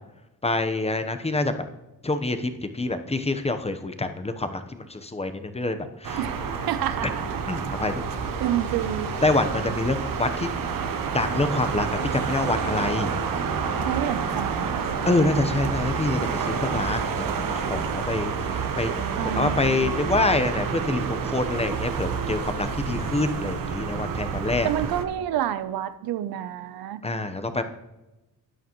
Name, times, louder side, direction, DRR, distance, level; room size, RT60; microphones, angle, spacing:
voice 1, 0.4-1.5 2.0-6.2 7.5-8.0 9.2-10.5 11.1-11.9 12.1-13.1 15.1-18.9 19.2-24.7 27.0-27.6, left 2 dB, 15° left, 8 dB, 0.9 m, -26 dB
sound 1, 6.0-25.0, right 6 dB, 65° right, 1.1 m, -29 dB
voice 2, 6.7-7.3 8.4-9.1 13.8-14.9 19.2-20.0 24.6-27.0, right 11 dB, 80° right, 12 dB, 0.7 m, -29 dB
13.0 x 9.0 x 3.0 m, 1.0 s
cardioid pair, 80°, 36 cm